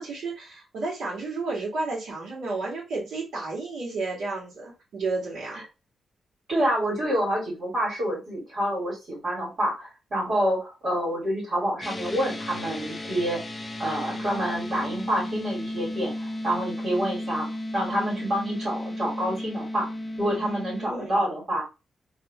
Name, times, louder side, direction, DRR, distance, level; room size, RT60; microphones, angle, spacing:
voice 1, 0.0-5.6 20.4-21.2, right 3 dB, 90° right, 2.3 m, -32 dB
voice 2, 6.5-13.4 13.8-17.5 17.7-19.9 20.2-21.6, equal, 45° right, 2.6 m, -27 dB
sound 1, 11.8-20.9, left 1 dB, 15° left, 0.5 m, -34 dB
3.6 x 3.5 x 3.1 m
wide cardioid pair, 150°, 0 cm